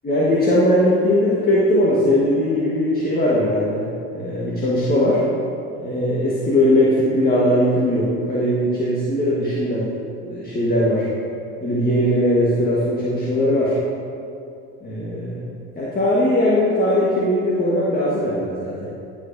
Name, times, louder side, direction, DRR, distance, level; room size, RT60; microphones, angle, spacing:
voice 1, 0.0-5.2 5.8-11.0 11.6-13.8 14.8-15.5 15.7-18.9, left 1 dB, 25° left, -7 dB, 1.4 m, -19 dB
13.5 x 5.1 x 2.7 m, 2.6 s
supercardioid pair, 90°, 36 cm